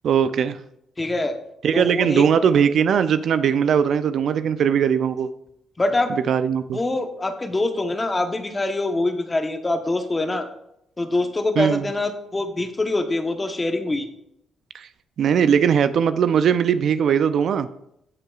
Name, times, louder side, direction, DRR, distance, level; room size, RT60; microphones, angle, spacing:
voice 1, 0.0-0.6 1.6-5.3 6.1-6.8 11.6-11.9 14.7-14.9 15.2-17.7, right 7 dB, 65° right, 12 dB, 0.4 m, -20 dB
voice 2, 1.0-1.4 1.7-2.2 5.8-6.1 6.7-10.5 11.0-14.1, left 2 dB, 20° left, 6 dB, 1.0 m, -24 dB
16.5 x 5.6 x 2.4 m, 0.79 s
cardioid pair, 90°, 0 cm